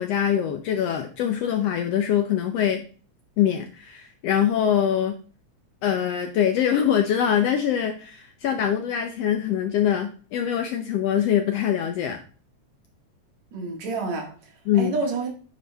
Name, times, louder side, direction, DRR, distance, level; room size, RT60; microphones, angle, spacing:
voice 1, 0.0-2.8 3.4-5.2 5.8-12.2 14.7-14.9, left 9 dB, 75° left, 1.5 m, -23 dB
voice 2, 13.5-15.3, right 3 dB, 65° right, 3.1 m, -29 dB
9.2 x 4.7 x 3.4 m
omnidirectional pair, 3.4 m